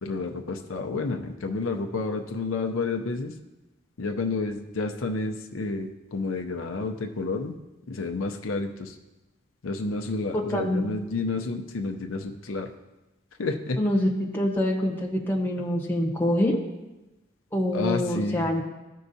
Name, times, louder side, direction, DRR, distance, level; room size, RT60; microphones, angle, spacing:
voice 1, 0.0-3.3 4.0-7.6 7.9-9.0 9.6-12.7 13.4-13.8 17.7-18.4, left 3 dB, 85° left, 4 dB, 0.6 m, -30 dB
voice 2, 10.3-10.9 13.8-16.6 17.5-18.6, left 1 dB, 10° left, -2 dB, 1.0 m, -25 dB
13.5 x 4.6 x 2.7 m, 1.0 s
head